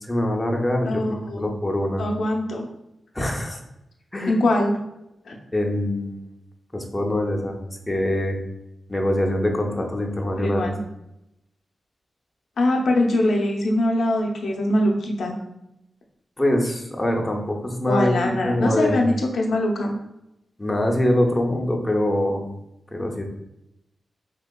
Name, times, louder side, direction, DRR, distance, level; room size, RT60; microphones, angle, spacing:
voice 1, 0.0-2.0 3.1-3.6 4.1-4.3 5.5-6.3 6.7-7.6 7.9-8.4 8.9-10.7 16.4-19.0 20.6-22.4 22.9-23.2, left 1 dB, 15° left, 1 dB, 0.6 m, -24 dB
voice 2, 0.8-1.4 2.0-2.7 4.3-4.8 5.3-5.4 10.4-10.8 12.6-15.4 17.9-20.0, left 1 dB, 80° left, 0 dB, 0.6 m, -22 dB
3.7 x 2.8 x 2.2 m, 0.87 s
wide cardioid pair, 90°, 0 cm